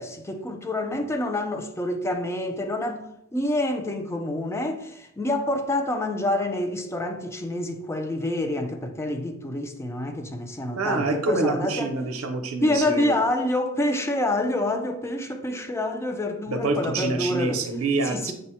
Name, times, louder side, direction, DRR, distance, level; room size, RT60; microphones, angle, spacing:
voice 1, 0.0-11.9 12.6-17.6 18.1-18.3, left 1 dB, 15° left, 0.4 m, -27 dB
voice 2, 10.8-13.1 16.5-18.3, right 3 dB, 80° right, 0.6 m, -26 dB
5.2 x 2.1 x 4.2 m
head